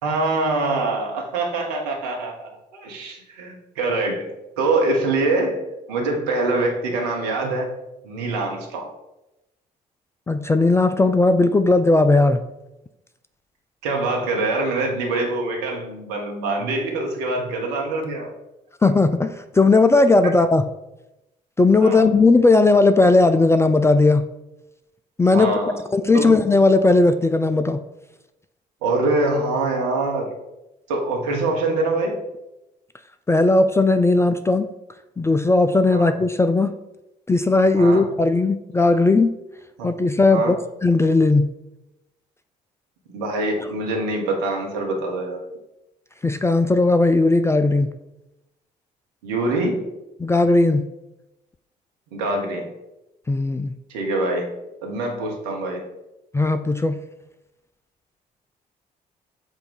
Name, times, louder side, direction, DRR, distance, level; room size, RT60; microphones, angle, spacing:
voice 1, 0.0-5.6 5.9-7.7 8.0-8.9 13.8-18.3 21.8-22.0 25.3-25.8 26.1-26.4 28.8-30.3 30.9-32.2 35.9-36.1 37.7-38.0 39.8-39.9 40.3-40.5 43.1-45.4 49.2-49.9 52.1-52.7 53.9-54.5 54.8-55.9, right 2 dB, 70° right, 0 dB, 1.1 m, -24 dB
voice 2, 10.3-12.4 18.8-20.6 21.6-24.3 25.2-25.5 25.9-27.8 33.3-34.7 35.2-36.7 37.3-39.3 39.8-40.6 40.8-41.5 46.2-47.9 50.2-50.8 53.3-53.7 56.3-57.0, left 3 dB, 10° left, 9 dB, 0.3 m, -17 dB
7.2 x 2.5 x 5.3 m, 0.93 s
figure-of-eight pair, 45°, 21 cm